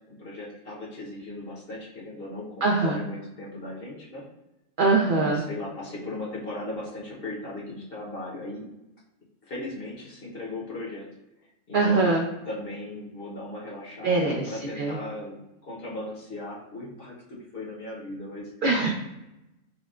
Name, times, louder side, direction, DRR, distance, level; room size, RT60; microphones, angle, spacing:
voice 1, 0.1-4.2 4.9-8.7 9.4-11.1 11.7-12.1 12.5-18.5, left 1 dB, 45° left, -4 dB, 1.0 m, -37 dB
voice 2, 2.6-3.0 4.8-5.4 11.7-12.2 14.0-15.0 18.6-18.9, right 3 dB, 75° right, 0 dB, 0.4 m, -23 dB
4.8 x 2.2 x 2.4 m, 0.92 s
omnidirectional pair, 1.5 m